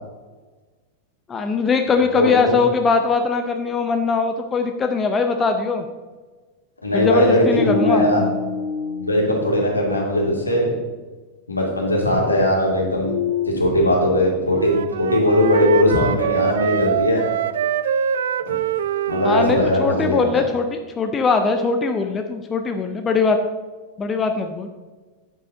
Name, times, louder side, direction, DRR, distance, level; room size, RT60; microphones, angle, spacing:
voice 1, 1.3-5.9 6.9-8.1 19.2-23.4 24.0-24.8, left 4 dB, 20° left, 6 dB, 0.7 m, -21 dB
voice 2, 2.1-2.5 6.8-8.2 9.0-10.8 11.5-13.1 13.5-17.2 18.5-18.6 19.1-20.3, left 1 dB, 80° left, -2 dB, 2.5 m, -19 dB
sound 1, 7.1-10.4 12.1-13.5, left 6 dB, 60° left, 0.8 m, -28 dB
Wind instrument woodwind instrument, 14.5-19.8, right 9 dB, 60° right, 0.3 m, -24 dB
9.4 x 7.8 x 3.8 m, 1.3 s
figure-of-eight pair, 90°, 0 cm